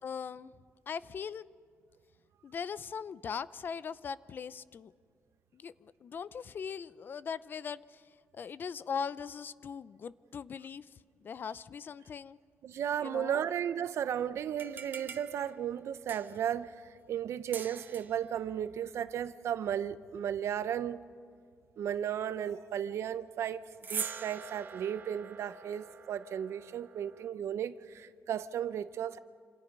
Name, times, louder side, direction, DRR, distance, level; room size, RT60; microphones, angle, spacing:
voice 1, 0.0-0.5 0.9-1.5 2.4-4.9 5.5-8.0 8.3-10.9 11.2-12.4 13.0-13.4, left 6 dB, 45° left, 0.5 m, -40 dB
voice 2, 12.6-21.0 21.8-23.6 23.9-29.2, right 9 dB, 80° right, 0.8 m, -35 dB
sound 1, 14.5-16.5 17.5-18.2 23.7-27.3, right 6 dB, 45° right, 1.1 m, -44 dB
27.5 x 26.0 x 5.4 m
wide cardioid pair, 155°, 5 cm